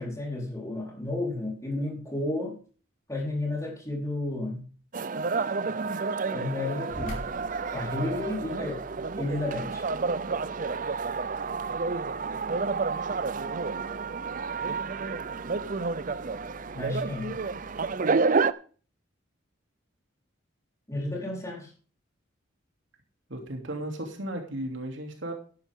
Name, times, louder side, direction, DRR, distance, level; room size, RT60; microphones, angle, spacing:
voice 1, 0.0-2.6 3.1-4.7 6.3-7.2 7.7-8.8 9.2-9.8 16.7-17.4 20.9-21.7, left 2 dB, 15° left, -2 dB, 4.2 m, -32 dB
sound 1, 4.9-18.5, right 4 dB, 40° right, 0.5 m, -30 dB
sound 2, 6.9-17.9, equal, 45° left, 4.9 m, -48 dB
voice 2, 23.3-25.3, right 1 dB, 65° right, 2 dB, 2.9 m, -35 dB
13.0 x 11.0 x 3.7 m, 0.40 s
head